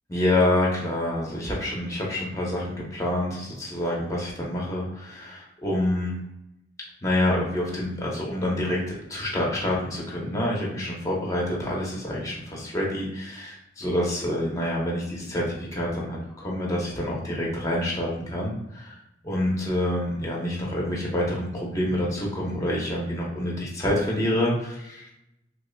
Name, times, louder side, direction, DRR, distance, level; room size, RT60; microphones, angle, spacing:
voice 1, 0.1-6.2 7.0-19.0 19.2-25.1, left 1 dB, 15° left, -3 dB, 0.8 m, -27 dB
5.3 x 2.1 x 2.3 m, 0.86 s
head